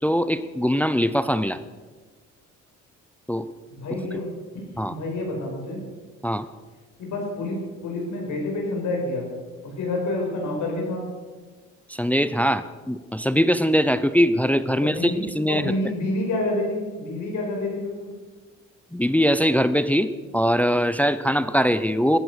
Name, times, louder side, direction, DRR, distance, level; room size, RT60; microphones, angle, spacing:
voice 1, 0.0-1.6 3.3-3.5 4.8-5.0 6.2-6.5 11.9-15.7 18.9-22.2, equal, 5° left, 13 dB, 0.6 m, -22 dB
voice 2, 3.7-5.8 7.0-9.3 9.6-11.0 14.8-15.2 15.5-18.1, left 2 dB, 75° left, 0 dB, 5.4 m, -28 dB
14.5 x 10.5 x 6.4 m, 1.3 s
cardioid pair, 90°, 30 cm